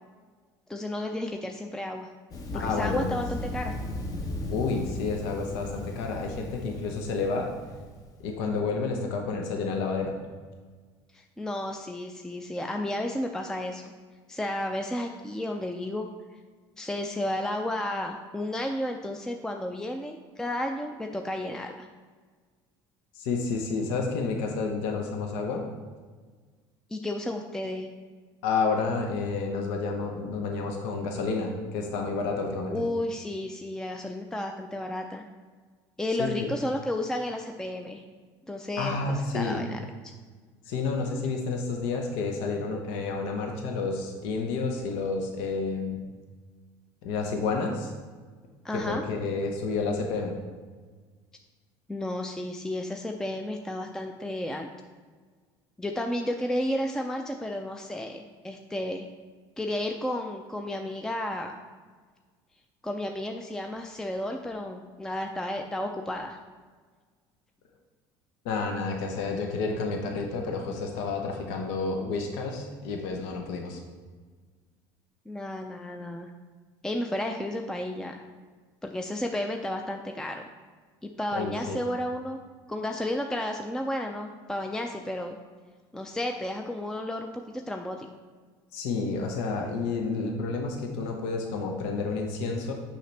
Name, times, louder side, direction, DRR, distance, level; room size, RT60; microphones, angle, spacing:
voice 1, 0.7-2.1 2.5-3.8 11.1-13.8 14.3-16.1 16.8-21.9 26.9-27.9 32.7-35.3 36.0-38.0 38.5-40.1 48.6-49.0 51.9-54.7 55.8-59.1 59.6-61.5 62.8-66.4 75.3-76.3 76.8-78.2 78.8-80.4 81.0-82.4 82.7-85.4 85.9-88.1, left 1 dB, 5° left, 4 dB, 0.4 m, -32 dB
Thunder, 2.3-8.2, left 1 dB, 35° left, 0.9 m, -36 dB
voice 2, 2.5-3.2 4.5-7.5 8.2-10.2 23.1-25.7 28.4-32.8 36.2-36.5 38.8-39.7 40.7-46.0 47.0-47.9 48.7-50.4 68.4-73.8 81.3-81.8 88.7-92.7, left 4 dB, 80° left, 2 dB, 0.8 m, -30 dB
6.5 x 5.7 x 3.3 m, 1.5 s
supercardioid pair, 110°, 10 cm